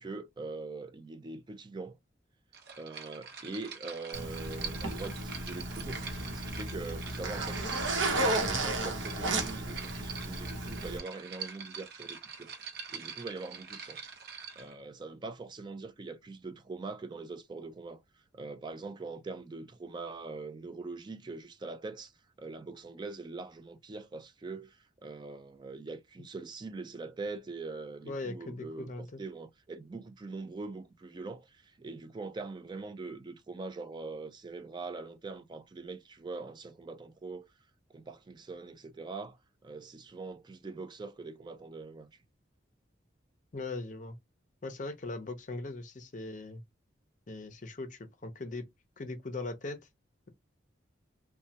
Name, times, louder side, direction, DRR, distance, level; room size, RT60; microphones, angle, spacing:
voice 1, 0.0-2.0 2.8-6.0 6.3-7.7 8.0-12.5 12.9-14.0 14.6-22.1 22.4-28.9 29.2-37.5 37.9-42.1, right 3 dB, 25° right, 0.3 m, -43 dB
sound 1, 2.5-14.8, right 6 dB, 55° right, 0.7 m, -45 dB
Zipper (clothing), 4.1-11.0, right 2 dB, 80° right, 0.9 m, -33 dB
voice 2, 28.0-29.2 43.5-44.2 44.6-46.6 47.3-48.7 49.0-49.8, left 2 dB, 40° left, 0.5 m, -39 dB
3.1 x 2.1 x 2.7 m
head